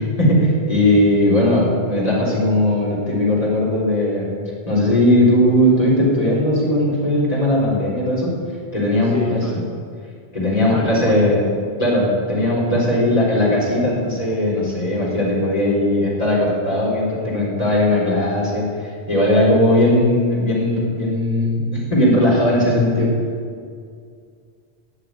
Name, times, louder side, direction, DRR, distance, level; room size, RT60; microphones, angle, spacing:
voice 1, 0.0-4.3 4.7-8.3 8.7-9.4 10.3-11.5 11.8-23.1, left 1 dB, 35° left, -5 dB, 4.1 m, -18 dB
voice 2, 9.0-9.7 10.6-11.3, left 2 dB, 15° left, 0 dB, 1.0 m, -30 dB
12.5 x 7.6 x 9.5 m, 2.2 s
omnidirectional pair, 1.1 m